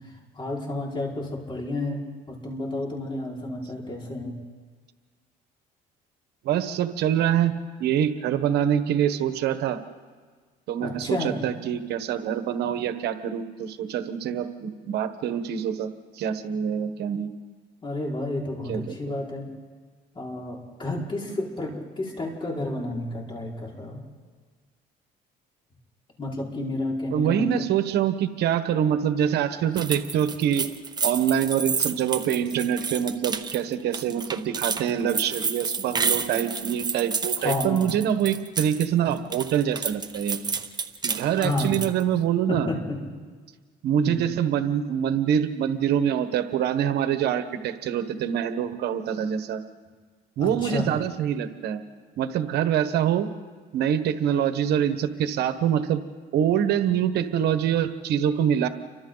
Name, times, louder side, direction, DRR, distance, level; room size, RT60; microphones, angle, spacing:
voice 1, 0.4-4.4 10.8-11.4 17.8-19.5 20.2-24.0 26.2-27.6 37.4-38.0 41.4-41.8 42.5-43.0 44.0-44.3 50.4-50.9, left 2 dB, 30° left, -2 dB, 5.3 m, -31 dB
voice 2, 6.4-7.5 7.8-9.8 10.7-17.3 18.7-18.9 21.2-21.4 27.1-30.7 31.0-40.4 41.0-42.7 43.8-49.6 50.4-51.8 52.2-53.3 53.7-56.0 56.3-58.7, right 9 dB, 75° right, 9 dB, 1.3 m, -25 dB
sound 1, 29.8-38.9 39.2-42.0, right 5 dB, 25° right, 1.1 m, -30 dB
30.0 x 24.5 x 4.0 m, 1.5 s
cardioid pair, 110°, 17 cm